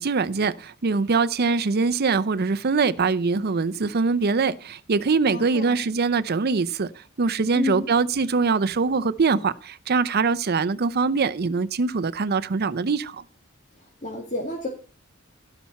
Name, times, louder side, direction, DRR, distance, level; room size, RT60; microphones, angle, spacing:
voice 1, 0.0-6.9 7.2-13.2, right 4 dB, 50° right, 0.6 m, -23 dB
voice 2, 5.3-5.8 7.5-7.9 13.7-14.7, left 2 dB, 35° left, 2.1 m, -31 dB
16.0 x 5.8 x 4.2 m
head